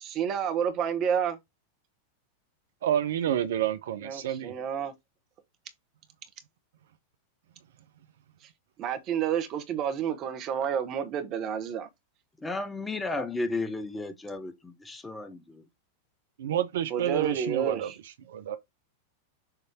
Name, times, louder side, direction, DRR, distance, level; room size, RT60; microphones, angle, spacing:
voice 1, 0.0-1.4 4.0-4.9 8.8-11.9 16.9-17.9, right 8 dB, 35° right, 1.5 m, -30 dB
voice 2, 2.8-4.5 16.4-18.6, right 10 dB, 60° right, 0.6 m, -29 dB
voice 3, 12.4-15.6, left 2 dB, 10° left, 1.2 m, -33 dB
6.9 x 3.2 x 4.4 m
figure-of-eight pair, 90°, 0 cm